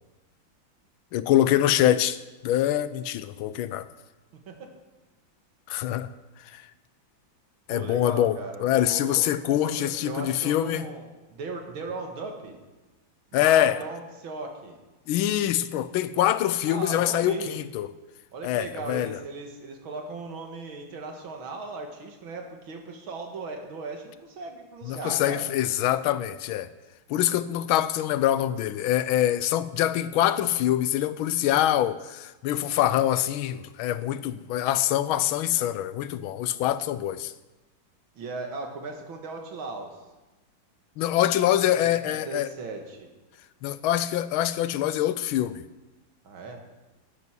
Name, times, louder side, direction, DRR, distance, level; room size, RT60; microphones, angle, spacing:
voice 1, 1.1-3.9 5.7-6.1 6.4-6.6 7.7-10.8 13.3-13.8 15.1-17.9 18.4-19.2 24.8-26.7 27.1-37.3 41.0-42.5 43.6-45.6, left 12 dB, 85° left, 1.5 m, -24 dB
voice 2, 4.3-4.7 7.7-12.6 13.3-14.8 16.7-17.7 18.3-25.5 38.2-40.0 42.0-43.1 46.2-46.6, right 3 dB, 80° right, 2.5 m, -37 dB
12.0 x 9.6 x 6.2 m
omnidirectional pair, 2.2 m